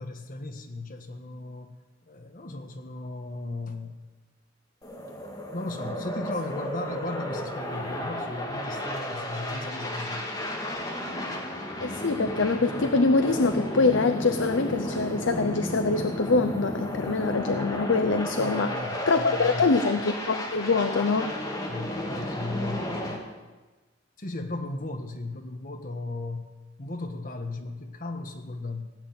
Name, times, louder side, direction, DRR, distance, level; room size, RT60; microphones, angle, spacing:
voice 1, 0.0-1.7 2.0-4.0 5.3-10.3 10.7-10.8 18.4-19.7 21.7-23.3 24.2-26.5 26.8-28.9, left 2 dB, 45° left, 5 dB, 1.5 m, -36 dB
sound 1, 4.8-23.2, left 1 dB, 20° left, 2.3 m, -33 dB
voice 2, 11.8-18.8 19.1-21.3, left 3 dB, 80° left, 9 dB, 0.7 m, -24 dB
17.5 x 8.0 x 9.4 m, 1.2 s
head